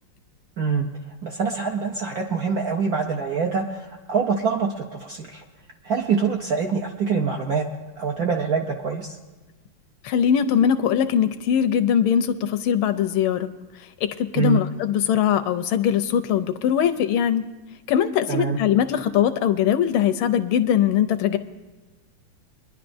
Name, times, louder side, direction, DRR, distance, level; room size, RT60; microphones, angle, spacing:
voice 1, 0.6-0.9 1.2-5.4 5.8-7.7 8.0-9.1 14.3-14.6 18.3-18.6, right 5 dB, 65° right, 1 dB, 1.0 m, -25 dB
voice 2, 10.0-13.5 14.0-17.5 17.9-21.4, left 9 dB, 75° left, 11 dB, 1.4 m, -21 dB
24.0 x 10.5 x 2.6 m, 1.2 s
omnidirectional pair, 2.4 m